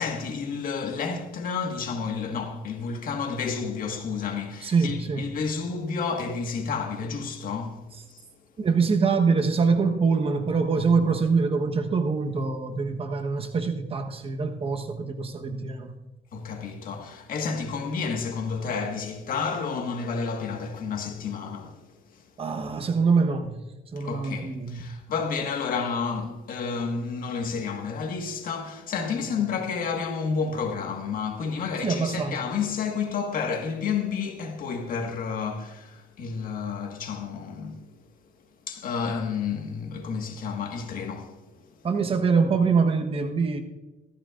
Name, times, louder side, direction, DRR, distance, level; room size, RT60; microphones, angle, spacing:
voice 1, 0.0-7.8 8.1-8.2 16.3-22.2 24.0-37.9 38.7-41.9, left 5 dB, 55° left, 1.7 m, -30 dB
voice 2, 4.6-5.4 8.6-15.9 22.4-23.5 23.9-24.9 29.4-29.5 31.8-32.5 41.8-43.6, right 4 dB, 35° right, 1.2 m, -24 dB
15.5 x 14.5 x 2.5 m
cardioid pair, 110°, 17 cm